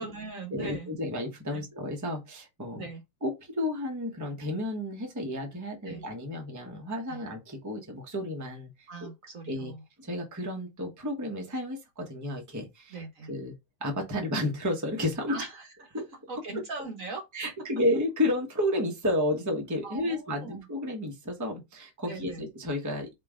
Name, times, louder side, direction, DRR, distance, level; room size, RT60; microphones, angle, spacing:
voice 1, 0.0-0.9 1.5-1.6 2.7-3.0 5.8-6.0 7.1-7.2 8.9-9.8 12.9-13.3 15.3-16.0 16.3-17.2 19.8-20.6 22.1-22.4, right 3 dB, 50° right, 1.3 m, -40 dB
voice 2, 0.5-2.9 3.2-9.1 9.5-9.7 10.0-13.0 13.3-13.5 13.8-15.4 15.9-16.0 17.3-23.1, left 1 dB, 10° right, 0.9 m, -31 dB
4.5 x 3.0 x 3.7 m
omnidirectional pair, 2.0 m